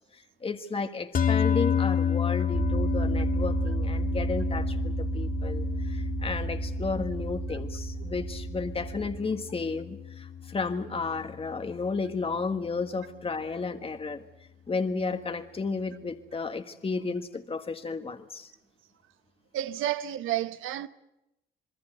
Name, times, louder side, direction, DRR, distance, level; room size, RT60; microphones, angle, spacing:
voice 1, 0.1-14.3 14.7-18.5, left 4 dB, 30° left, 1.6 m, -33 dB
sound 1, 1.1-11.6, left 7 dB, 45° left, 1.1 m, -30 dB
sound 2, 2.5-9.2, right 6 dB, 15° right, 1.6 m, -32 dB
voice 2, 19.5-20.9, right 13 dB, 85° right, 1.1 m, -30 dB
27.0 x 21.0 x 8.0 m
cardioid pair, 90°, 20 cm